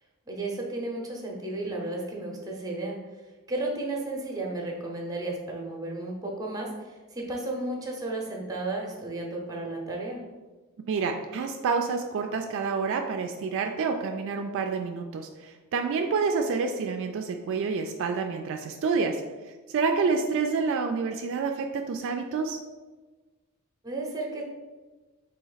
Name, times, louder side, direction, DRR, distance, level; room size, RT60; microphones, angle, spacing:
voice 1, 0.3-3.0 3.5-10.2 23.8-24.4, right 2 dB, 15° right, 0 dB, 0.7 m, -33 dB
voice 2, 10.9-19.2 19.7-22.6, right 5 dB, 60° right, 4 dB, 0.3 m, -28 dB
4.0 x 2.8 x 3.9 m, 1.3 s
head